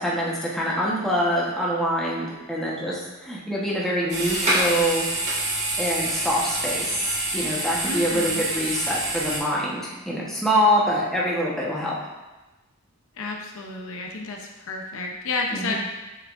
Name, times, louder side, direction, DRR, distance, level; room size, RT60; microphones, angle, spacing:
voice 1, 0.0-5.1 5.8-12.0 15.5-15.7, equal, ahead, -6 dB, 1.1 m, -25 dB
sound 1, 4.1-9.4, right 1 dB, 30° right, 1.6 m, -26 dB
voice 2, 7.8-8.5 13.2-15.7, left 3 dB, 65° left, 1 dB, 0.7 m, -31 dB
7.6 x 6.0 x 2.6 m, 1.1 s
head